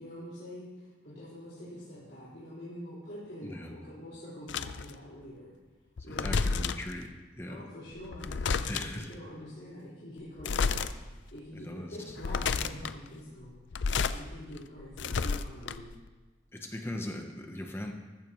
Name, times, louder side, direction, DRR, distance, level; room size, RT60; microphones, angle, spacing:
voice 1, 0.0-5.5 6.0-6.4 7.5-10.8 11.3-15.9, equal, 55° left, -12 dB, 4.6 m, -45 dB
voice 2, 3.4-3.7 6.2-7.1 7.4-7.6 8.7-9.1 11.5-11.9 12.6-12.8 16.5-17.9, left 1 dB, 15° left, 3 dB, 0.8 m, -39 dB
sound 1, 4.5-4.9 6.0-6.9 8.0-9.0 10.4-10.9 11.4-11.5 12.1-12.9 13.6-14.2 14.6-16.0, left 5 dB, 75° left, 0.5 m, -31 dB
14.0 x 14.0 x 3.1 m, 1.2 s
head